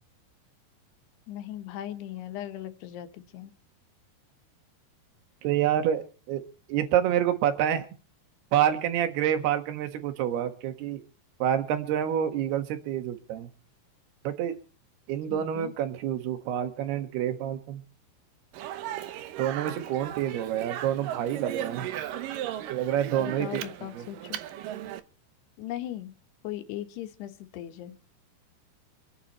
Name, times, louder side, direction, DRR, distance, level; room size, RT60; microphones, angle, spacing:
voice 1, 1.3-3.5 15.3-15.7 23.2-24.4 25.6-26.1 26.4-28.0, left 12 dB, 70° left, 8 dB, 3.3 m, -38 dB
voice 2, 5.4-6.4 6.7-7.9 8.5-11.0 11.4-13.5 14.2-14.6 15.1-17.8 19.4-21.9 22.7-23.6 23.9-24.0, right 10 dB, 70° right, 8 dB, 3.3 m, -27 dB
Speech, 18.5-25.0, right 12 dB, 85° right, 1.9 m, -37 dB
26.0 x 9.6 x 4.3 m, 0.37 s
omnidirectional pair, 5.2 m